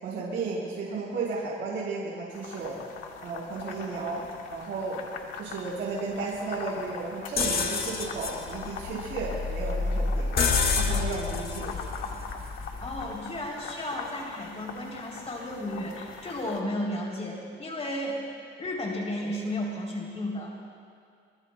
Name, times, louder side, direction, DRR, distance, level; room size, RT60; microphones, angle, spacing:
voice 1, 0.0-2.8 3.2-4.2 4.5-5.0 5.4-10.3 10.7-11.8, right 4 dB, 75° right, -5 dB, 4.7 m, -34 dB
sound 1, 2.3-16.6, left 5 dB, 85° left, 1.6 m, -42 dB
sound 2, 7.4-13.2, left 4 dB, 50° left, 1.7 m, -29 dB
voice 2, 12.8-18.2 18.6-20.6, left 1 dB, 30° left, -2 dB, 3.2 m, -33 dB
26.0 x 24.5 x 2.2 m, 2.2 s
cardioid pair, 90°, 20 cm